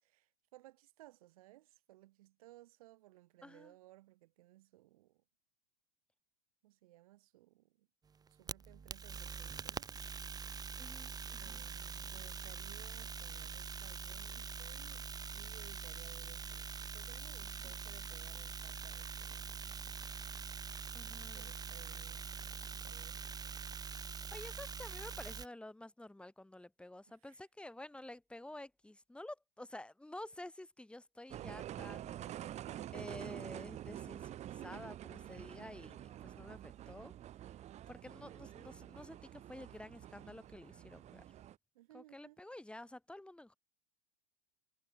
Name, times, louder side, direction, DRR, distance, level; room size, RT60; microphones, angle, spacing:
voice 1, 0.0-5.2 6.6-7.9 8.3-9.9 11.3-15.1 15.3-19.8 21.3-24.2 27.1-27.4 32.3-33.5 41.7-42.4, right 17 dB, 60° right, 4.8 m, -60 dB
voice 2, 3.4-3.7 10.8-11.7 17.6-17.7 20.9-21.5 24.3-32.3 32.9-37.1 37.9-41.2 41.9-43.6, left 1 dB, 5° left, 7.8 m, -51 dB
sound 1, 8.2-25.5, right 6 dB, 20° right, 2.3 m, -44 dB
sound 2, 31.3-41.5, right 12 dB, 35° right, 2.7 m, -48 dB
hypercardioid pair, 90°, 20 cm